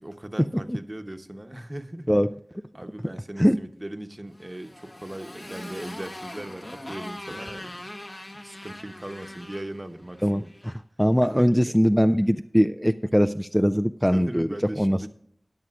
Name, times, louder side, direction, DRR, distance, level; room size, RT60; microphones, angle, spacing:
voice 1, 0.0-2.1 2.7-7.8 8.3-10.5 11.2-11.8 14.1-15.1, right 1 dB, 30° right, 7 dB, 0.9 m, -39 dB
Motorcycle, 4.3-10.7, left 1 dB, 50° left, 1.4 m, -41 dB
voice 2, 10.2-10.7 11.0-14.5 14.8-15.1, equal, ahead, 9 dB, 0.3 m, -21 dB
16.5 x 9.7 x 2.4 m, 0.66 s
wide cardioid pair, 50°, 0 cm